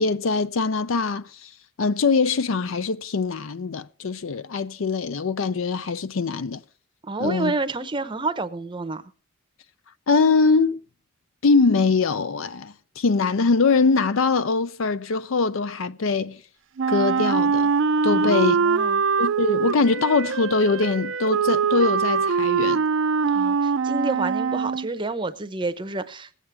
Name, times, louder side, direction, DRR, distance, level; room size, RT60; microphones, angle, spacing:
voice 1, 0.0-1.5 1.8-6.6 7.2-7.5 10.1-10.8 11.4-16.4 16.9-17.7 18.0-18.6 19.2-22.8, left 4 dB, 65° left, 0.5 m, -22 dB
voice 2, 7.1-9.0 18.1-19.0 23.2-26.4, right 3 dB, 20° right, 0.7 m, -29 dB
Wind instrument woodwind instrument, 16.8-24.9, right 5 dB, 60° right, 0.4 m, -23 dB
20.5 x 8.3 x 3.4 m
head